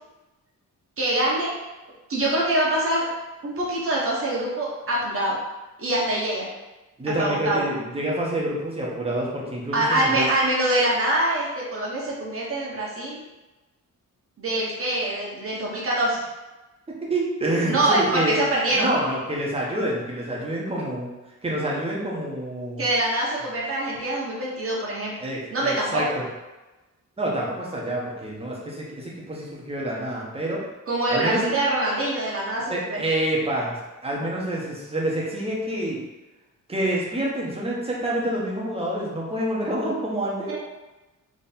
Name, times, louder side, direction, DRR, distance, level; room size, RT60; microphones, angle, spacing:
voice 1, 1.0-1.5 2.1-3.0 3.4-5.4 5.8-6.5 7.2-7.7 9.7-13.2 14.4-16.2 17.7-18.9 22.8-25.1 25.5-26.0 30.9-33.0 40.5-40.6, right 1 dB, 40° right, -5 dB, 1.1 m, -24 dB
voice 2, 7.0-10.3 16.9-18.4 18.7-21.1 21.4-22.8 25.2-26.2 27.2-30.6 31.1-31.4 32.7-33.8 34.0-36.0 36.7-40.6, right 1 dB, 15° right, -4 dB, 1.0 m, -27 dB
3.6 x 3.1 x 4.3 m, 1.1 s
wide cardioid pair, 160°, 33 cm